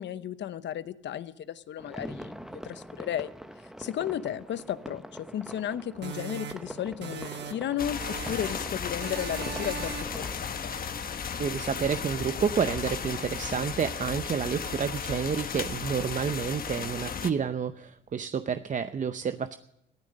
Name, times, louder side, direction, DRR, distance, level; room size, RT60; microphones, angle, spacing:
voice 1, 0.0-3.3 3.8-10.7, left 10 dB, 70° left, 14 dB, 0.8 m, -34 dB
sound 1, 1.8-10.4, equal, ahead, 1.0 m, -44 dB
sound 2, 6.0-7.7 8.0-8.7 9.0-10.3, right 8 dB, 65° right, 1.4 m, -39 dB
sound 3, 7.8-17.3, left 6 dB, 50° left, 1.2 m, -35 dB
voice 2, 11.4-19.6, right 7 dB, 40° right, 10 dB, 0.7 m, -29 dB
15.5 x 13.5 x 6.4 m, 0.83 s
cardioid pair, 90°, 19 cm